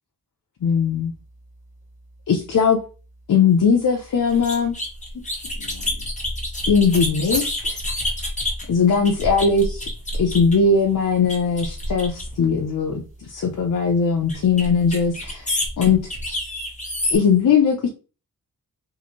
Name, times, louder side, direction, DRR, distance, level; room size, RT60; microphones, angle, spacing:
voice 1, 0.6-1.1 2.3-2.8 3.3-4.8 5.6-6.0 6.7-7.8 8.7-9.9 10.2-15.5 15.8-16.0 17.1-17.9, left 5 dB, 60° left, 1 dB, 0.6 m, -19 dB
sound 1, 4.3-10.7 11.3-12.5 14.3-17.2, left 1 dB, 20° left, 1.2 m, -28 dB
3.8 x 2.5 x 3.0 m, 0.34 s
wide cardioid pair, 115°, 35 cm